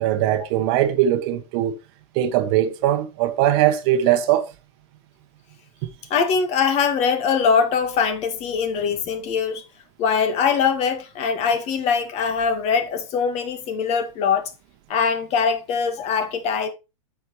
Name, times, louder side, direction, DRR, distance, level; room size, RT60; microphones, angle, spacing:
voice 1, 0.0-1.8 2.1-4.5, right 11 dB, 45° right, 1.2 m, -20 dB
voice 2, 6.1-9.6 10.0-14.5 14.9-16.7, left 6 dB, 35° left, 1.8 m, -22 dB
9.6 x 7.0 x 3.1 m
hypercardioid pair, 105°, 18 cm